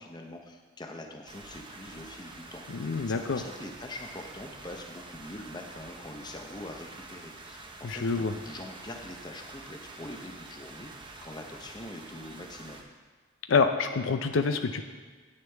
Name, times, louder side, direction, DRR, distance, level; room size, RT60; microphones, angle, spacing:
voice 1, 0.0-10.9 11.2-12.8, left 1 dB, 20° left, 3 dB, 0.7 m, -44 dB
sound 1, 1.3-12.8, right 2 dB, 25° right, 0.7 m, -47 dB
voice 2, 2.8-3.4 7.8-8.3 13.5-14.8, left 4 dB, 70° left, 7 dB, 0.5 m, -26 dB
9.6 x 8.8 x 3.4 m, 1.4 s
head